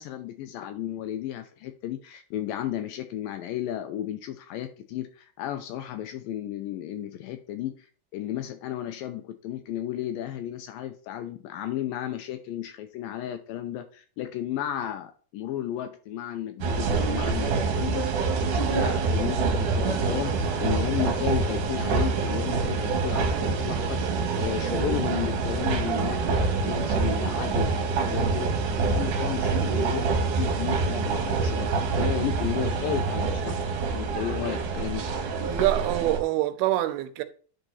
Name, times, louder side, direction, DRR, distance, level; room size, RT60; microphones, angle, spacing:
voice 1, 0.0-7.9 8.1-24.0 24.3-28.5 28.8-33.6 33.9-35.3, left 12 dB, 80° left, 2.1 m, -33 dB
sound 1, 16.6-36.2, right 4 dB, 65° right, 2.4 m, -26 dB
voice 2, 35.3-37.2, right 15 dB, 85° right, 2.6 m, -25 dB
10.5 x 3.9 x 4.0 m
omnidirectional pair, 4.5 m